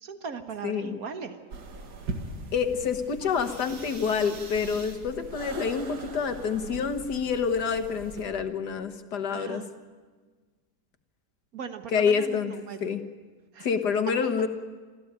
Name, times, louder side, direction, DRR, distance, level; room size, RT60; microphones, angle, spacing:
voice 1, 0.0-1.4 3.2-3.3 9.3-9.7 11.5-12.9 13.5-13.7, right 6 dB, 65° right, 7 dB, 1.9 m, -39 dB
voice 2, 0.6-1.0 2.5-9.6 11.9-12.5 12.8-13.0 13.6-14.5, left 6 dB, 90° left, 7 dB, 1.9 m, -27 dB
sound 1, 1.5-8.2, right 3 dB, 85° right, 2.3 m, -40 dB
25.5 x 14.5 x 8.9 m, 1.4 s
omnidirectional pair, 1.7 m